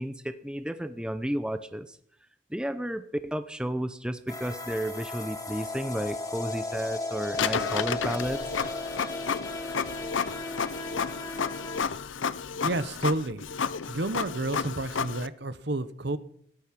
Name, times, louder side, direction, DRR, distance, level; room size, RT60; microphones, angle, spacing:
voice 1, 0.0-2.0 2.5-8.6, equal, 5° right, 11 dB, 0.6 m, -32 dB
sound 1, 4.3-11.8, left 2 dB, 20° left, 1.9 m, -36 dB
Printer, 7.3-15.3, left 6 dB, 80° left, 0.6 m, -32 dB
voice 2, 12.6-13.4 13.9-16.2, right 2 dB, 60° right, 14 dB, 1.0 m, -30 dB
17.5 x 12.0 x 6.0 m, 0.66 s
head